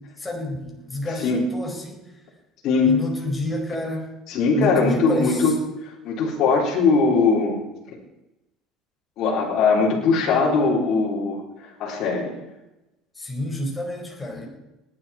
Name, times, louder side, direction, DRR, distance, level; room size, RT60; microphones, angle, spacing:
voice 1, 0.2-2.0 2.9-4.1 4.6-5.5 13.2-14.5, left 1 dB, 15° left, 0 dB, 4.6 m, -29 dB
voice 2, 2.6-3.0 4.3-5.6 5.8-7.6 7.9-8.0 9.2-12.3, left 4 dB, 60° left, -3 dB, 4.0 m, -20 dB
19.5 x 11.0 x 4.4 m, 0.96 s
cardioid pair, 120°, 0 cm